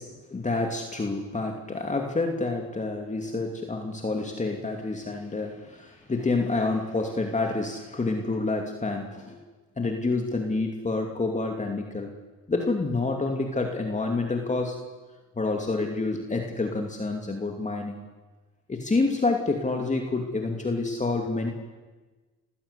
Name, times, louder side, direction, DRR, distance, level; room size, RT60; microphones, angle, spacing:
voice 1, 0.3-9.4 9.8-12.1 12.5-14.8 15.4-18.0 18.7-21.5, left 3 dB, 25° left, 2 dB, 2.6 m, -28 dB
29.5 x 15.5 x 8.3 m, 1.3 s
cardioid pair, 90°, 30 cm